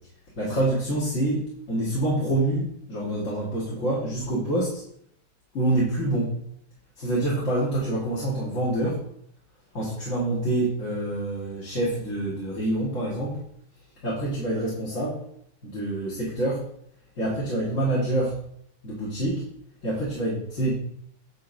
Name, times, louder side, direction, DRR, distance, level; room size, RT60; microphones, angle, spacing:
voice 1, 0.4-4.8 5.5-6.3 7.0-9.0 9.7-13.4 14.0-15.2 15.6-16.7 17.2-18.4 18.8-19.4 19.8-20.7, right 1 dB, 45° left, -7 dB, 1.9 m, -26 dB
7.6 x 7.2 x 2.6 m, 0.69 s
omnidirectional pair, 2.0 m